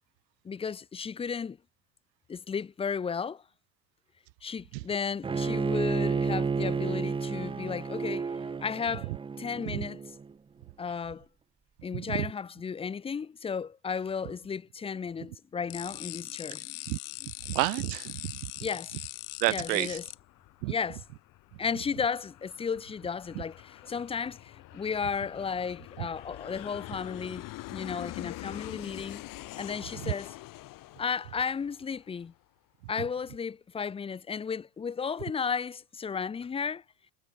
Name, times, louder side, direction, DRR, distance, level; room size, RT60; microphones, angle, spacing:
voice 1, 0.4-1.6 2.3-3.4 4.4-8.3 8.6-9.1 9.4-10.0 10.8-11.3 11.8-16.8 17.2-17.3 18.6-18.9 19.5-20.1 20.7-21.0 21.6-29.2 29.6-30.4 31.0-32.3 32.9-36.8, left 6 dB, 10° left, 0.9 m, -34 dB
Bowed string instrument, 5.2-10.3, right 5 dB, 10° right, 1.3 m, -31 dB
voice 2, 11.9-12.2 16.9-17.0 17.5-18.5 19.4-20.0 20.6-20.7 30.0-30.1, right 24 dB, 85° right, 2.5 m, -30 dB
sound 1, 15.7-20.1, left 29 dB, 70° left, 2.0 m, -41 dB
Aircraft, 19.1-32.3, left 18 dB, 40° left, 4.2 m, -45 dB
cardioid pair, 170°, 48 cm